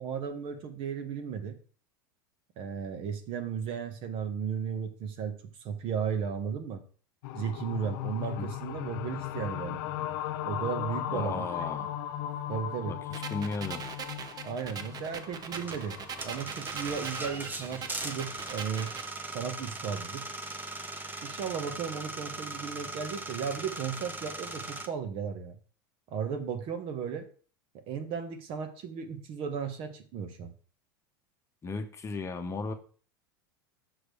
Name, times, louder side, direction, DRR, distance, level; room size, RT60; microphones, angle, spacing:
voice 1, 0.0-1.6 2.6-6.8 7.3-9.8 10.5-11.6 12.5-13.0 14.4-16.0 16.2-18.9 19.3-20.2 21.2-25.5 26.1-27.3 27.9-30.5, right 7 dB, 50° right, 8 dB, 1.4 m, -35 dB
sound 1, 7.2-16.4, left 12 dB, 65° left, 0.6 m, -37 dB
voice 2, 11.1-11.9 12.8-13.8 31.6-32.7, left 3 dB, 25° left, 6 dB, 1.0 m, -35 dB
sound 2, 13.1-19.1, right 6 dB, 35° right, 0.8 m, -42 dB
sound 3, 15.5-24.9, right 2 dB, 15° right, 1.1 m, -39 dB
6.2 x 5.0 x 4.9 m, 0.40 s
hypercardioid pair, 95°, 12 cm